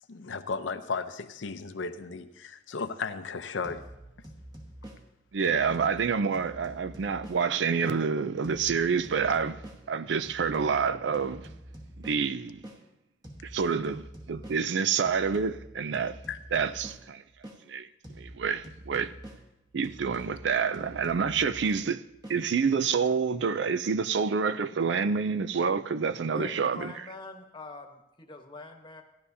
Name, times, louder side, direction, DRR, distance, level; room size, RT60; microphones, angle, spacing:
voice 1, 0.1-3.8 16.3-16.4, left 4 dB, 90° left, 0.7 m, -35 dB
sound 1, 3.6-8.0 8.4-12.8 13.2-17.6 18.0-22.4, right 1 dB, 20° right, 1.2 m, -47 dB
voice 2, 5.3-9.6 9.9-11.5 12.0-12.6 13.4-16.2 16.5-17.2 17.7-17.9 18.2-19.1 19.7-22.0 22.3-26.9, right 5 dB, 70° right, 0.4 m, -28 dB
voice 3, 26.3-29.0, left 2 dB, 25° left, 1.1 m, -44 dB
16.0 x 11.5 x 2.7 m
head